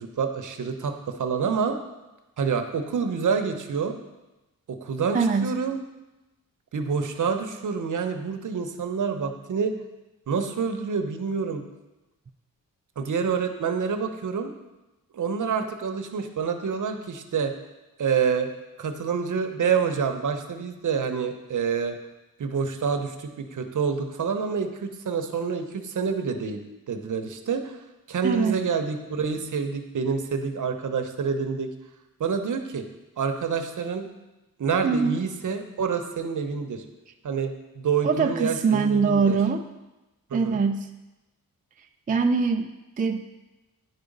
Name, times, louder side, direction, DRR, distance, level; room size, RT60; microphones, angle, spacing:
voice 1, 0.0-1.8 2.4-3.9 4.7-5.8 6.7-9.8 10.3-11.6 13.0-14.5 15.1-17.5 18.0-18.5 18.8-22.0 22.4-31.7 32.2-32.8 33.2-34.1 34.6-36.8 37.2-37.5 37.8-39.4 40.3-40.6, right 6 dB, 60° right, 6 dB, 0.9 m, -27 dB
voice 2, 5.1-5.5 28.2-28.6 34.8-35.2 38.0-39.6 40.3-40.9 42.1-43.2, right 5 dB, 25° right, 5 dB, 0.4 m, -23 dB
9.6 x 4.9 x 5.3 m, 1.0 s
wide cardioid pair, 125°, 35 cm